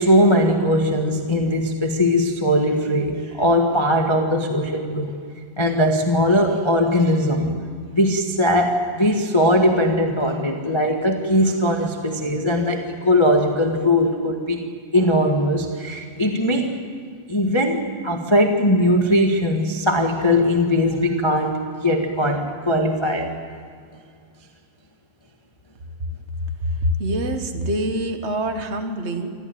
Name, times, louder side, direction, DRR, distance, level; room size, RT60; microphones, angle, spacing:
voice 1, 0.0-5.1 5.6-7.6 7.9-14.7 14.9-16.7 17.3-23.3, left 1 dB, 20° left, 3 dB, 0.7 m, -20 dB
voice 2, 26.6-29.3, equal, 50° right, 6 dB, 0.8 m, -25 dB
25.5 x 14.5 x 9.4 m, 2.1 s
omnidirectional pair, 3.4 m